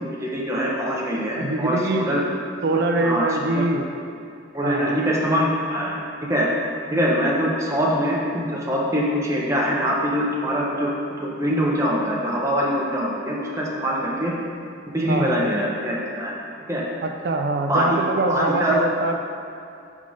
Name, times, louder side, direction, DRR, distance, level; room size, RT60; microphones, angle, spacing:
voice 1, 0.2-2.2 3.0-3.6 4.5-6.0 6.3-6.5 6.9-10.9 11.2-14.3 14.9-16.3 16.7-16.8 17.7-18.8, equal, 15° right, -4 dB, 0.7 m, -23 dB
voice 2, 1.4-2.1 2.6-4.0 4.6-5.0 15.1-15.4 17.0-19.2, right 2 dB, 55° right, 4 dB, 0.4 m, -24 dB
5.3 x 3.6 x 5.0 m, 2.6 s
head